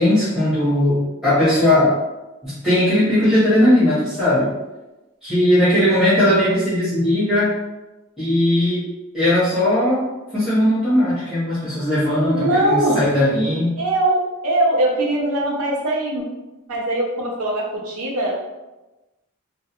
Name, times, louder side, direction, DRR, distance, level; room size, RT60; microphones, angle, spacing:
voice 1, 0.0-2.0 2.4-4.5 5.2-7.5 8.2-8.8 9.1-10.0 10.3-13.7, left 1 dB, 5° right, -14 dB, 0.9 m, -18 dB
voice 2, 12.3-13.1 13.8-16.2 16.7-18.3, right 1 dB, 90° right, -1 dB, 0.5 m, -21 dB
2.2 x 2.1 x 2.8 m, 1.1 s
head